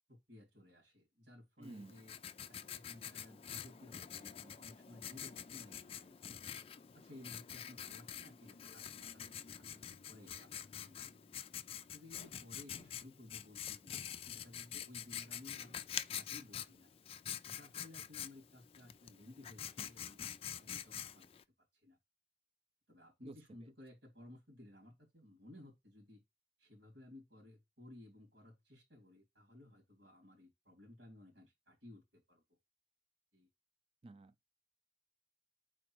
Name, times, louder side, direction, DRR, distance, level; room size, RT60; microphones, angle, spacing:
voice 1, 0.1-2.1 2.5-6.4 6.9-11.3 11.9-15.8 16.1-16.9 17.5-21.3 21.8-22.0 22.9-26.2 26.6-32.4 33.3-33.5, left 1 dB, 90° right, 2.9 m, -57 dB
Writing, 1.6-21.4, left 9 dB, 30° left, 0.3 m, -47 dB
voice 2, 1.6-2.0 23.2-23.7 34.0-34.4, right 2 dB, 30° right, 0.5 m, -52 dB
4.9 x 4.3 x 4.7 m
head